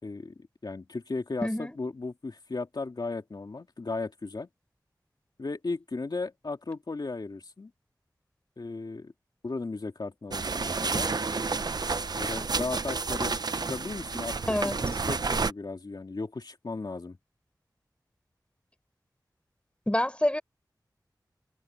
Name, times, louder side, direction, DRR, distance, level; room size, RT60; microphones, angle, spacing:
voice 1, 0.0-4.5 5.4-7.7 8.6-9.1 9.4-11.1 12.1-17.2, left 3 dB, 65° left, 2.8 m, -36 dB
voice 2, 1.4-1.8 14.5-14.8 19.9-20.4, left 1 dB, 15° left, 4.3 m, -27 dB
sound 1, 10.3-15.5, right 4 dB, 65° right, 0.7 m, -30 dB
wide cardioid pair, 55°, 8 cm